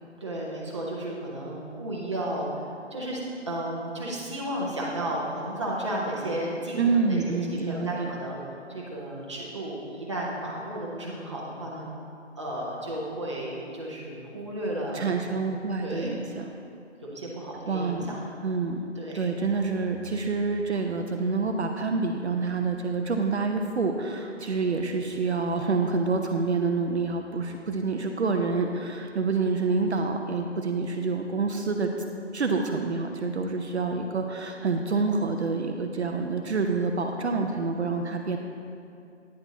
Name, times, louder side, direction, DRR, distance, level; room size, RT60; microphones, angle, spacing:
voice 1, 0.2-2.6 2.9-3.2 3.5-7.2 7.5-8.4 8.7-11.9 12.4-15.4 15.8-16.2 17.0-18.2 19.0-19.2, right 1 dB, 25° right, -5 dB, 0.9 m, -33 dB
voice 2, 6.8-8.1 14.9-16.5 17.7-18.1 18.4-18.8 19.1-31.9 32.3-38.4, right 4 dB, 65° right, 4 dB, 0.6 m, -27 dB
9.5 x 4.5 x 4.0 m, 2.6 s
figure-of-eight pair, 170°, 36 cm